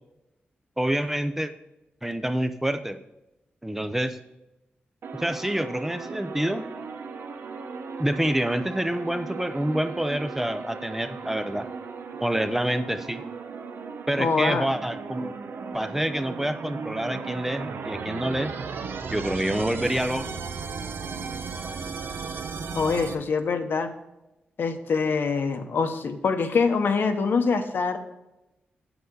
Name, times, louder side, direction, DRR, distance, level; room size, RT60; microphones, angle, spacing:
voice 1, 0.8-1.5 2.0-3.0 3.6-4.2 5.1-6.7 8.0-11.7 12.2-13.2 14.1-15.3 15.7-18.5 19.1-20.2, right 1 dB, 10° right, 9 dB, 0.5 m, -27 dB
sound 1, 5.0-23.1, right 5 dB, 80° right, 0.8 m, -36 dB
voice 2, 14.2-14.7 22.8-23.9 24.6-28.0, left 5 dB, 70° left, 6 dB, 1.0 m, -24 dB
8.0 x 7.9 x 3.8 m, 0.95 s
wide cardioid pair, 130°, 4 cm